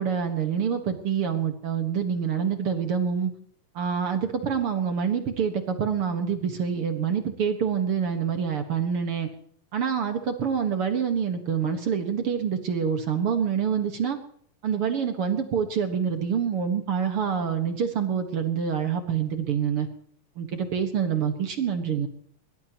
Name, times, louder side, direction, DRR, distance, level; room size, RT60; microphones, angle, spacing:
voice 1, 0.0-3.3 3.8-9.3 9.7-14.2 14.6-19.9 20.4-22.1, right 7 dB, 50° right, 6 dB, 2.0 m, -26 dB
22.0 x 18.5 x 3.0 m, 0.63 s
omnidirectional pair, 3.9 m